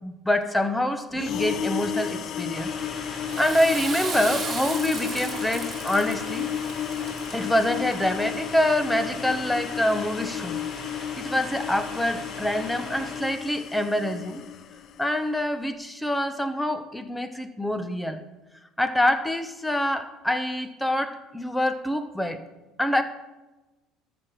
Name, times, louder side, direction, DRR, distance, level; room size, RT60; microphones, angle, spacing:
voice 1, 0.0-2.7 3.1-6.5 7.3-10.6 10.9-14.4 15.0-18.2 18.8-22.4 22.8-23.0, left 1 dB, 5° left, 10 dB, 1.1 m, -26 dB
sound 1, 1.1-15.1, left 9 dB, 50° left, 0.7 m, -33 dB
sound 2, 2.5-13.2, left 2 dB, 35° left, 3.1 m, -40 dB
Water / Toilet flush, 3.1-8.3, right 5 dB, 35° right, 1.8 m, -36 dB
13.0 x 6.2 x 4.9 m, 1.1 s
hypercardioid pair, 65°, 0 cm